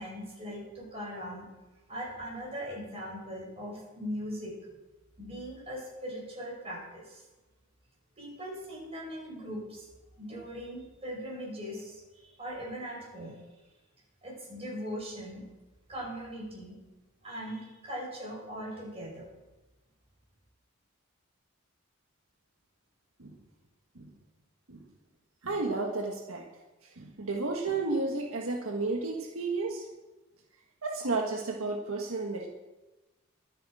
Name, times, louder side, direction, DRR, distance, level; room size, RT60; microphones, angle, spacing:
voice 1, 0.0-1.4 1.9-4.5 5.2-7.2 8.2-9.9 10.2-13.4 14.2-15.5 15.9-16.8 17.2-19.2, equal, 30° right, -3 dB, 6.1 m, -40 dB
voice 2, 25.4-26.5 27.0-29.9 30.8-32.5, right 3 dB, 80° right, 0 dB, 1.6 m, -32 dB
23.0 x 8.4 x 5.0 m, 1.1 s
head